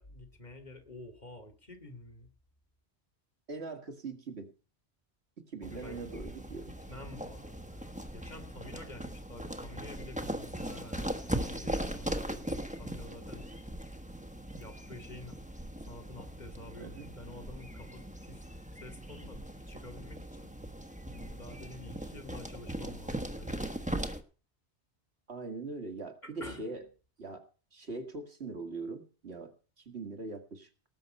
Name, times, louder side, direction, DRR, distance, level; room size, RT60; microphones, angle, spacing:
voice 1, 0.0-2.3 5.6-6.1 6.7-13.5 14.5-15.4 15.9-18.4 18.8-20.5 21.1-23.8 26.2-26.7, left 1 dB, 40° left, 6 dB, 2.3 m, -49 dB
voice 2, 3.5-4.5 5.4-6.7 16.8-17.1 25.3-26.8 27.2-27.4 27.7-30.7, right 3 dB, 70° right, 6 dB, 2.3 m, -41 dB
sound 1, 5.6-24.2, right 1 dB, 5° right, 1.3 m, -39 dB
18.5 x 7.8 x 5.4 m, 0.37 s
omnidirectional pair, 1.1 m